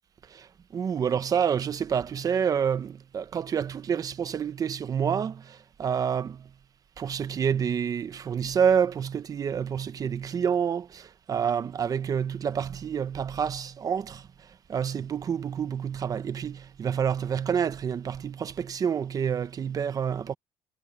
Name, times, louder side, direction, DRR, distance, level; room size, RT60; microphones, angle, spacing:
voice 1, 0.3-6.5 7.0-14.3 14.7-20.3, right 7 dB, 35° right, 0.9 m, -28 dB
cardioid pair, 145°, 11 cm